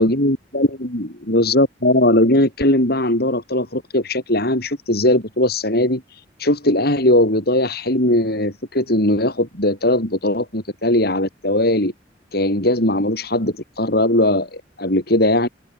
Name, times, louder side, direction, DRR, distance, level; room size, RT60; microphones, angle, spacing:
voice 1, 0.0-6.0 6.4-11.9 12.3-15.5, left 1 dB, 55° left, 7.6 m, -19 dB
open air
head